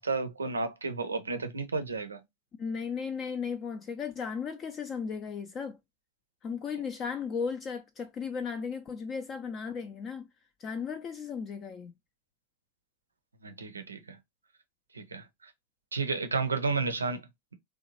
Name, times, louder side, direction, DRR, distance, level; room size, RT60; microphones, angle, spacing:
voice 1, 0.0-2.2 13.4-14.2 14.9-15.5 15.9-17.5, right 4 dB, 75° right, 0.5 m, -32 dB
voice 2, 2.6-5.8 6.4-10.3 10.6-11.9, left 6 dB, 25° left, 0.4 m, -35 dB
2.9 x 2.2 x 2.7 m
figure-of-eight pair, 90°, 0 cm